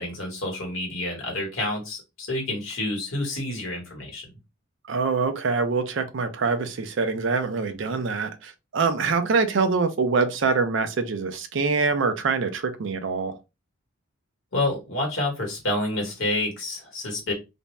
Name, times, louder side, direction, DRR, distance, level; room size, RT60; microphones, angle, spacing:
voice 1, 0.0-4.2 14.5-17.3, left 2 dB, 65° left, 1.2 m, -28 dB
voice 2, 4.9-13.3, right 4 dB, 60° right, 0.4 m, -24 dB
2.5 x 2.1 x 3.0 m
head